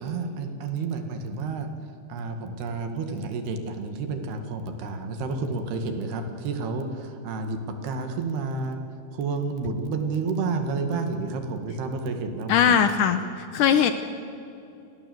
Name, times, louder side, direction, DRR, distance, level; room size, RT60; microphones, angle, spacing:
voice 1, 0.0-8.8 9.1-12.8, right 4 dB, 85° right, 6 dB, 4.0 m, -30 dB
voice 2, 12.5-13.9, left 8 dB, 75° left, 9 dB, 2.0 m, -20 dB
29.5 x 17.5 x 7.9 m, 2.6 s
omnidirectional pair, 4.5 m